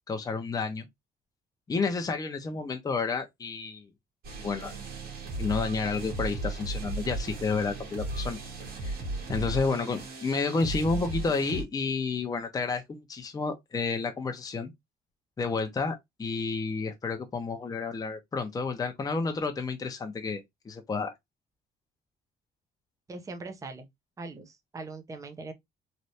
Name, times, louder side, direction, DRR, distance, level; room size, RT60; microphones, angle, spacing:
voice 1, 0.1-0.9 1.7-3.9 4.4-4.7 5.4-8.4 8.8-9.0 9.3-14.7 15.4-21.1, left 4 dB, 20° left, 0.7 m, -30 dB
sound 1, 4.2-11.6, right 2 dB, 60° right, 1.6 m, -36 dB
voice 2, 23.1-23.9 24.2-25.5, right 3 dB, 20° right, 0.6 m, -41 dB
3.2 x 2.5 x 2.7 m
cardioid pair, 110°, 17 cm